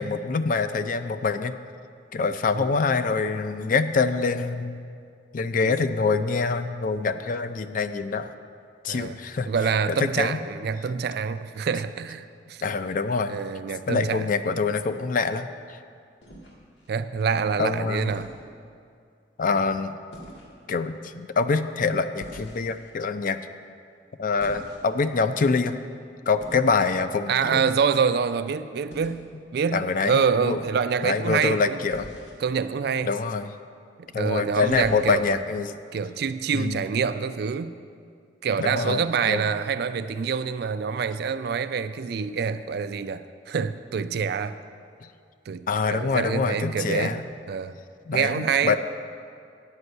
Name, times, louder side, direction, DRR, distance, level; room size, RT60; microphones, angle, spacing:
voice 1, 0.0-1.5 2.1-4.8 5.3-8.3 8.8-9.5 10.2-10.4 12.6-13.4 13.9-15.5 17.6-18.1 19.4-20.0 20.7-23.4 24.2-25.8 26.3-27.6 29.7-30.6 31.0-32.1 33.0-33.5 34.1-35.8 36.5-36.8 38.6-39.4 45.0-45.1 45.7-47.2 48.1-48.8, left 4 dB, 45° left, 10 dB, 0.4 m, -25 dB
voice 2, 8.9-9.2 9.5-12.6 13.3-14.3 16.9-18.3 27.3-31.8 32.4-33.1 34.0-35.4 35.9-37.8 38.4-44.6 45.5-47.2 47.5-47.7 48.1-48.8, right 6 dB, 60° right, 12 dB, 0.4 m, -26 dB
sound 1, 16.2-16.9 18.1-18.4 20.1-20.5 22.2-22.9 24.4-25.1 26.4-26.8 28.9-29.2 31.9-32.4 34.7-35.3, equal, 75° left, 1.9 m, -44 dB
9.7 x 5.3 x 7.9 m, 2.3 s
head